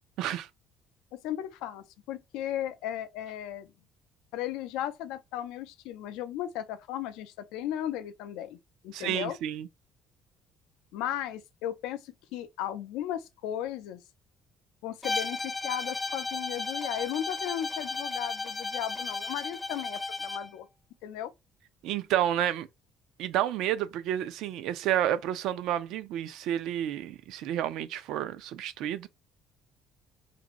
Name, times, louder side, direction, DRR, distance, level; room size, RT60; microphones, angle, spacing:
voice 1, 0.2-0.5 8.9-9.7 21.8-22.7 23.2-29.1, right 11 dB, 75° right, 0.3 m, -30 dB
voice 2, 1.1-3.7 4.3-8.6 8.8-9.4 10.9-14.0 14.8-20.7 21.0-21.3, left 11 dB, 90° left, 0.3 m, -36 dB
Bowed string instrument, 15.0-20.5, left 3 dB, 15° left, 0.3 m, -34 dB
2.5 x 2.5 x 2.9 m
cardioid pair, 120°, 0 cm